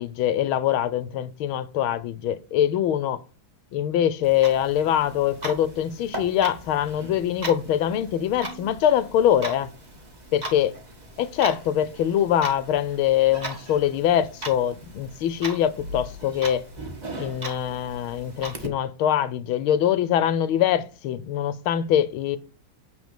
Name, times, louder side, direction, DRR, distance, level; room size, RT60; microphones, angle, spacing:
voice 1, 0.0-3.2 3.7-9.7 10.3-10.7 11.2-16.6 17.2-22.4, left 10 dB, 85° left, 1.6 m, -23 dB
Clock, 4.2-18.7, right 1 dB, 20° right, 1.7 m, -38 dB
9.6 x 4.0 x 7.2 m
omnidirectional pair, 2.2 m